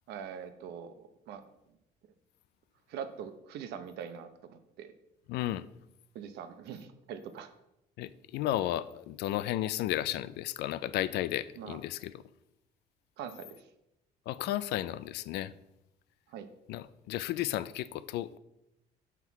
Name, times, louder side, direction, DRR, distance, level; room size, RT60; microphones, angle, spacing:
voice 1, 0.1-0.9 1.3-1.4 2.9-4.9 6.1-7.5 11.6-11.8 13.2-13.6 16.3-16.5, right 8 dB, 80° right, 10 dB, 0.8 m, -42 dB
voice 2, 5.3-5.7 8.0-12.2 14.3-15.5 16.7-18.4, left 13 dB, 80° left, 16 dB, 0.4 m, -33 dB
6.1 x 5.7 x 4.6 m, 0.86 s
cardioid pair, 110°, 17 cm